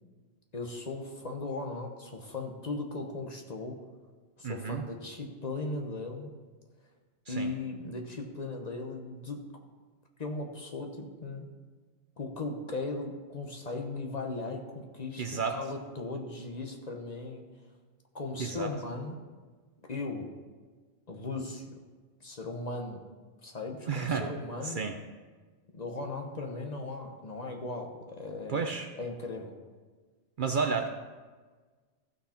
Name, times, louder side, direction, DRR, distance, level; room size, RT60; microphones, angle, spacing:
voice 1, 0.5-3.8 4.4-6.3 7.3-9.5 10.2-11.5 12.2-17.5 18.1-19.2 19.9-20.3 21.1-21.8 22.2-23.0 23.4-24.8 25.7-28.7 29.0-29.6, left 3 dB, 40° left, 2 dB, 1.1 m, -37 dB
voice 2, 4.4-4.8 7.3-7.5 15.2-15.6 18.4-18.7 23.9-24.2 24.6-24.9 28.5-28.9 30.4-30.9, right 5 dB, 55° right, 5 dB, 0.7 m, -31 dB
15.0 x 6.0 x 4.3 m, 1.4 s
omnidirectional pair, 1.2 m